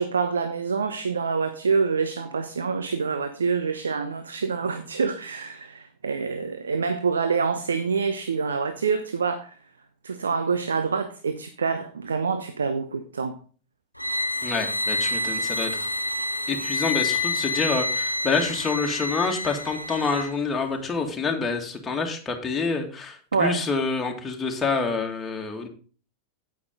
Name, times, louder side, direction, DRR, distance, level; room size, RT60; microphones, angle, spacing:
voice 1, 0.0-9.6 10.0-13.4 23.3-23.6, right 5 dB, 70° right, 9 dB, 0.8 m, -26 dB
sound 1, 14.0-20.3, left 2 dB, 90° left, 0.9 m, -28 dB
voice 2, 14.4-15.9 16.5-25.7, left 4 dB, 15° left, 1 dB, 2.2 m, -27 dB
9.5 x 8.9 x 3.9 m, 0.39 s
figure-of-eight pair, 90°, 0 cm